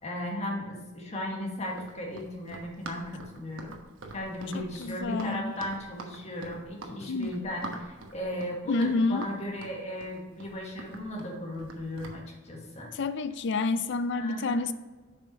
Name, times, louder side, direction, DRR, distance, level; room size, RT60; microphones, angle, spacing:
voice 1, 0.0-3.7 4.1-12.9 14.2-14.6, left 1 dB, 35° left, 1.7 m, -36 dB
Run, 1.7-12.2, right 2 dB, 80° right, 1.1 m, -44 dB
voice 2, 4.5-5.5 7.0-7.3 8.7-9.3 12.9-14.7, left 3 dB, 60° left, 0.4 m, -29 dB
6.9 x 5.6 x 4.2 m
head